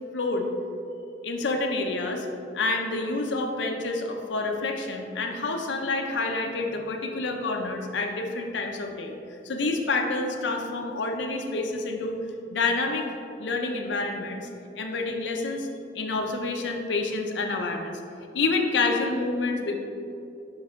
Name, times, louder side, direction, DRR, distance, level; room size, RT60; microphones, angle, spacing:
voice 1, 0.1-0.5 1.2-2.3 2.5-12.2 12.5-13.1 13.4-14.5 14.8-15.7 15.9-18.0 18.3-19.8, left 3 dB, 90° left, 3 dB, 0.6 m, -28 dB
6.3 x 4.8 x 3.6 m, 2.7 s
head